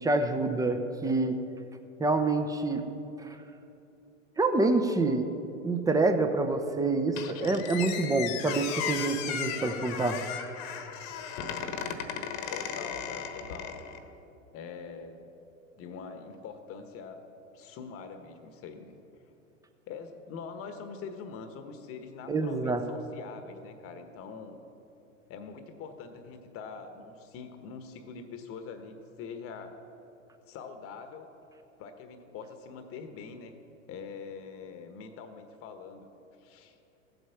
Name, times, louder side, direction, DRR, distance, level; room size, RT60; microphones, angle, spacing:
voice 1, 0.0-1.4 2.0-2.8 3.2-3.4 4.4-5.3 5.6-10.2 22.3-22.8, right 3 dB, 10° right, 7 dB, 0.8 m, -27 dB
Squeak, 7.2-14.0, left 8 dB, 50° left, 1.3 m, -36 dB
voice 2, 12.5-13.8 14.5-15.3 15.8-17.2 17.5-18.9 19.9-24.6 25.3-29.8 30.5-31.3 31.8-33.5 33.9-36.1 36.4-36.8, left 5 dB, 35° left, 8 dB, 1.2 m, -43 dB
15.0 x 8.0 x 5.8 m, 2.9 s
hypercardioid pair, 100°, 40 cm